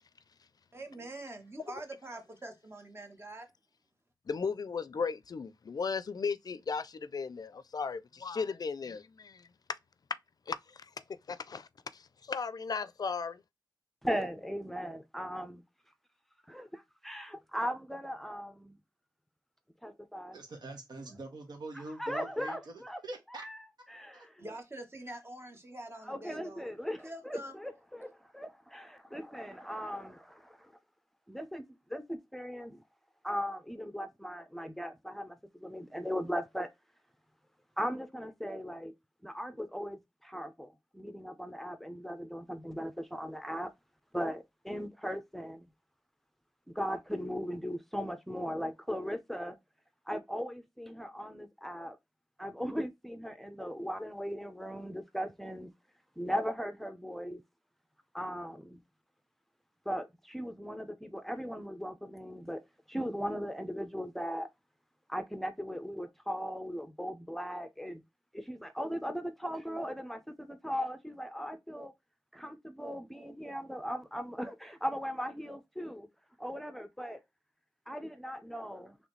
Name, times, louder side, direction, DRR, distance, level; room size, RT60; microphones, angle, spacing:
voice 1, 0.7-3.5 24.4-26.7 27.0-27.5, right 1 dB, 35° right, 1.2 m, -45 dB
voice 2, 4.3-9.5 10.5-10.9 11.3-11.7 11.9-13.4, left 5 dB, 65° left, 0.4 m, -36 dB
voice 3, 14.0-15.6 16.5-16.6 17.0-18.8 19.8-20.4 21.7-23.0 23.3-24.4 26.0-30.7 31.3-32.8 33.2-36.7 37.8-38.9 39.2-43.7 44.1-45.7 46.7-49.6 50.1-52.0 52.4-55.7 56.2-57.4 58.1-58.8 59.9-62.6 62.9-64.5 65.1-68.0 68.3-71.9 72.3-76.1 76.4-77.2 77.9-79.0, equal, 5° left, 0.6 m, -38 dB
voice 4, 20.3-22.7 23.0-23.4 24.1-24.3, right 2 dB, 85° right, 1.4 m, -44 dB
4.0 x 3.1 x 3.1 m
wide cardioid pair, 70°, 7 cm